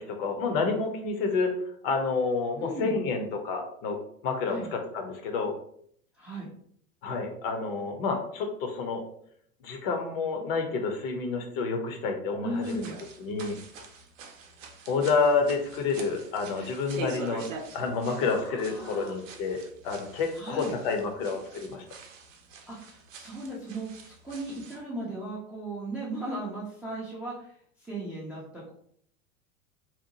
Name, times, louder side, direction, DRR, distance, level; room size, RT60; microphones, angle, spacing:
voice 1, 0.0-4.0 4.2-5.5 7.0-9.1 9.6-12.6 13.2-13.6 14.9-17.4 17.7-21.8, left 4 dB, 45° left, 4 dB, 0.6 m, -29 dB
voice 2, 2.6-3.0 4.5-4.7 6.1-6.5 12.4-12.9 16.5-16.8 18.3-19.2 20.3-20.7 22.7-28.7, right 1 dB, 5° right, -7 dB, 0.4 m, -37 dB
sound 1, 12.6-24.8, right 4 dB, 65° right, 0.6 m, -45 dB
2.8 x 2.1 x 2.7 m, 0.65 s
figure-of-eight pair, 85°, 42 cm